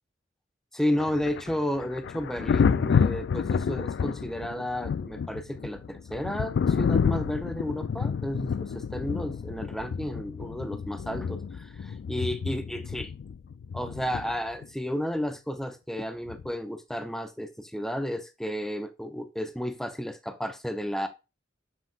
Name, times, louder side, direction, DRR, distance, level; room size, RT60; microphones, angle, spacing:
voice 1, 0.7-13.1 13.7-21.1, equal, ahead, 0.6 m, -32 dB
Thunder, 1.0-14.7 16.3-16.5, left 6 dB, 65° left, 0.3 m, -29 dB
7.3 x 5.8 x 2.4 m
head